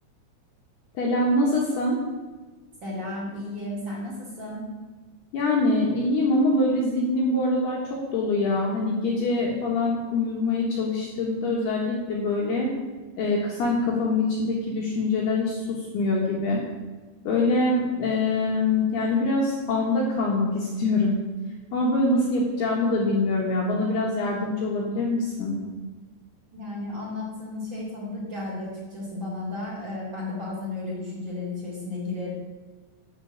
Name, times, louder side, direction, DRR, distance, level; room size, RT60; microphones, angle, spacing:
voice 1, 0.9-2.0 5.3-12.7 13.2-16.6 17.2-21.1 21.7-25.6, left 2 dB, 65° left, -2 dB, 3.0 m, -24 dB
voice 2, 2.8-4.7 26.5-32.3, left 2 dB, 25° right, -5 dB, 3.6 m, -33 dB
10.5 x 6.1 x 8.1 m, 1.3 s
omnidirectional pair, 5.8 m